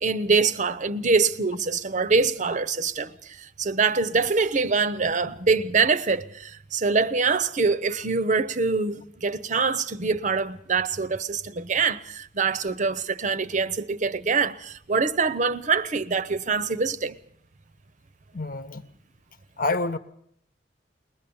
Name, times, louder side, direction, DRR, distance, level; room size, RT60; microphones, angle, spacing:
voice 1, 0.0-17.2, right 4 dB, 45° right, 0.8 m, -24 dB
voice 2, 18.3-18.8 19.6-20.0, left 3 dB, 55° left, 1.2 m, -27 dB
22.0 x 20.5 x 7.1 m
head